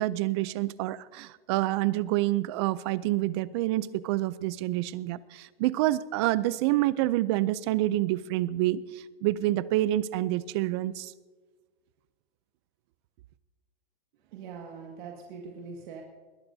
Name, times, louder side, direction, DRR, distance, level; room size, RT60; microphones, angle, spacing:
voice 1, 0.0-11.1, right 16 dB, 30° right, 18 dB, 0.4 m, -27 dB
voice 2, 14.3-16.0, right 5 dB, 55° right, 1 dB, 1.9 m, -42 dB
21.0 x 18.0 x 2.7 m, 1.4 s
hypercardioid pair, 150°, 30 cm